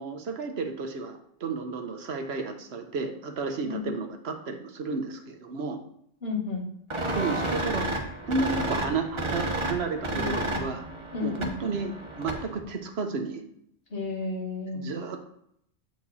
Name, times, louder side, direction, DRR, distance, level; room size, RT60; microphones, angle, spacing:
voice 1, 0.0-5.8 7.1-7.9 8.2-10.8 11.2-13.4 14.7-15.2, right 4 dB, 65° right, 5 dB, 1.1 m, -32 dB
voice 2, 3.6-3.9 6.2-6.7 10.1-10.7 11.1-11.6 13.9-15.1, left 4 dB, 55° left, -2 dB, 2.1 m, -33 dB
sound 1, 6.9-12.6, right 1 dB, 25° right, 1.1 m, -31 dB
8.2 x 4.8 x 4.1 m, 0.72 s
omnidirectional pair, 1.2 m